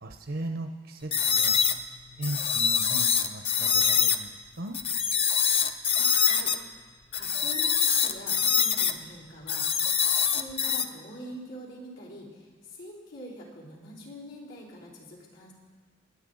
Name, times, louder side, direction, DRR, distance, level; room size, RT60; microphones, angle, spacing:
voice 1, 0.0-1.6 2.2-4.3 4.6-4.8, right 2 dB, 65° right, 5 dB, 0.8 m, -37 dB
sound 1, 1.1-4.2 4.7-6.6 7.1-8.9 9.5-10.9, left 7 dB, 30° left, 0.6 m, -24 dB
voice 2, 5.6-6.5 7.1-15.5, equal, 80° left, -6 dB, 4.2 m, -45 dB
27.5 x 9.7 x 3.9 m, 1.5 s
head